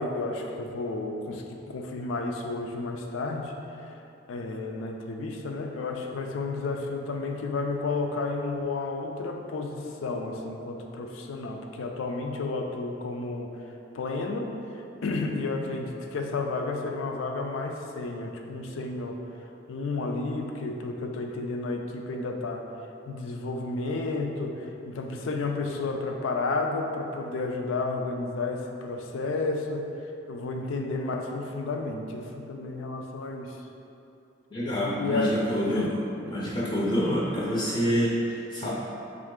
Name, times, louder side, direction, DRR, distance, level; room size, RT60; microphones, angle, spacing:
voice 1, 0.0-3.6 3.8-4.0 4.3-13.6 13.9-19.2 19.7-22.7 23.1-29.9 30.3-33.7 35.0-35.4 35.7-36.0, left 3 dB, 90° left, 3 dB, 0.4 m, -32 dB
voice 2, 34.5-35.9 36.3-38.7, equal, 25° left, -5 dB, 0.4 m, -27 dB
3.7 x 3.1 x 3.6 m, 2.8 s
head